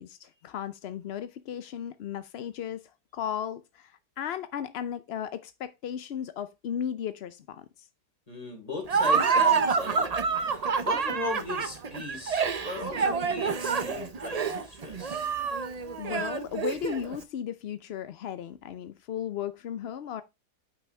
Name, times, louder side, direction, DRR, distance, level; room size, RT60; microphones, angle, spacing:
voice 1, 0.0-2.8 3.1-7.9 16.0-20.2, left 9 dB, 70° left, 0.6 m, -35 dB
voice 2, 8.3-15.3, left 2 dB, 20° left, 3.2 m, -38 dB
Laughter, 8.9-17.2, right 5 dB, 75° right, 0.3 m, -27 dB
9.0 x 5.8 x 3.3 m
omnidirectional pair, 1.8 m